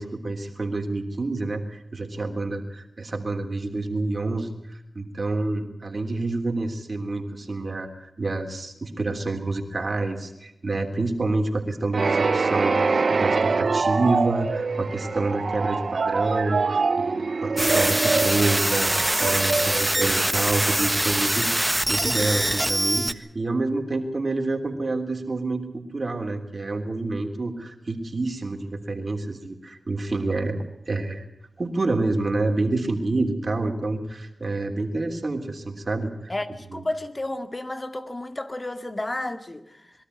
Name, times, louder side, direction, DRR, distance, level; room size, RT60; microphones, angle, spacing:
voice 1, 0.0-31.2 31.6-36.3 36.7-36.8, right 2 dB, 55° right, 3.3 m, -28 dB
sound 1, 11.9-20.7, right 4 dB, 75° right, 0.7 m, -24 dB
sound 2, 17.6-23.1, right 1 dB, 15° right, 1.4 m, -23 dB
voice 2, 36.3-39.9, left 1 dB, 35° left, 2.2 m, -32 dB
22.5 x 13.0 x 9.7 m
cardioid pair, 45°, 0 cm